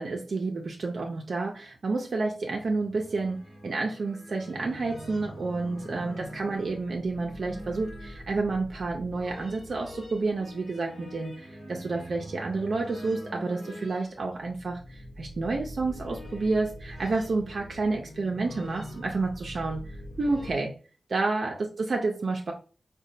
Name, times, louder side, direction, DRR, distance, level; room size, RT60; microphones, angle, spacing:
voice 1, 0.0-19.8 20.2-20.8 21.1-22.5, right 3 dB, 70° right, 0 dB, 0.5 m, -30 dB
sound 1, 2.3-20.5, equal, 85° left, 1.0 m, -43 dB
3.9 x 2.2 x 2.6 m, 0.36 s
cardioid pair, 50°, 0 cm